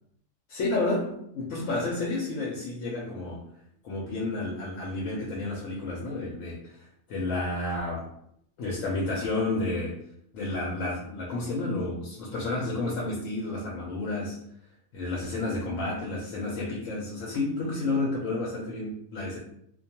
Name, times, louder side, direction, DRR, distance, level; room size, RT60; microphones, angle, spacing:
voice 1, 0.5-3.4 3.8-8.1 8.6-10.0 10.3-14.4 14.9-19.4, left 2 dB, 90° left, -3 dB, 1.0 m, -31 dB
2.4 x 2.2 x 2.8 m, 0.69 s
omnidirectional pair, 1.3 m